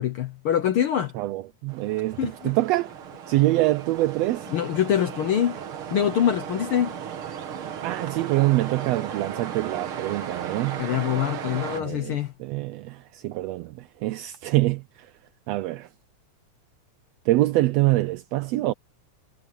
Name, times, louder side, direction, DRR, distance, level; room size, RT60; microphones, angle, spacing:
voice 1, 0.0-1.1 2.2-2.5 4.5-5.6 5.9-6.9 10.8-12.3, left 9 dB, 70° left, 1.3 m, -24 dB
voice 2, 1.1-2.9 3.3-4.5 7.8-10.8 11.8-13.7 14.0-14.8 15.5-15.9 17.3-18.7, right 18 dB, 85° right, 1.5 m, -25 dB
sound 1, 1.7-11.8, right 8 dB, 55° right, 1.9 m, -36 dB
omnidirectional pair, 3.5 m